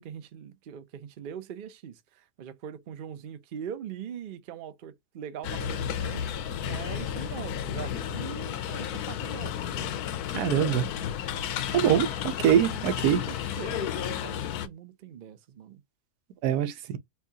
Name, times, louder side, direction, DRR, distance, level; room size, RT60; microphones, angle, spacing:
voice 1, 0.0-6.2 6.6-9.9 12.0-15.8, right 8 dB, 55° right, 0.5 m, -42 dB
sound 1, 5.4-14.7, left 9 dB, 80° left, 1.1 m, -32 dB
voice 2, 10.3-10.9 11.7-13.2 16.4-17.0, right 10 dB, 90° right, 1.2 m, -24 dB
4.5 x 2.3 x 2.7 m
omnidirectional pair, 1.7 m